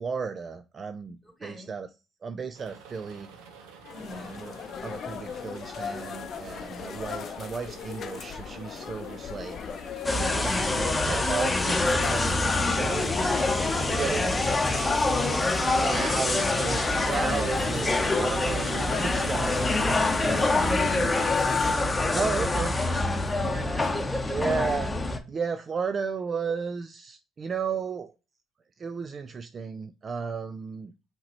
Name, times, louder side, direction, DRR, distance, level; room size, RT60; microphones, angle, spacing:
voice 1, 0.0-1.9 2.2-3.3 4.1-9.7 10.3-13.1 13.8-14.2 15.7-21.2 22.1-22.8 24.3-24.9 25.3-28.1 28.8-30.9, right 5 dB, 45° right, 0.4 m, -34 dB
voice 2, 1.2-1.7 3.9-4.3 13.0-16.2 17.1-17.4 20.5-22.2 22.8-24.4, equal, 5° right, 2.7 m, -39 dB
sound 1, 2.5-20.9, right 6 dB, 85° right, 0.8 m, -47 dB
sound 2, 3.9-21.8, left 7 dB, 55° left, 0.5 m, -36 dB
sound 3, 10.0-25.2, left 2 dB, 20° left, 0.9 m, -26 dB
5.7 x 2.9 x 2.9 m
supercardioid pair, 65°, 0 cm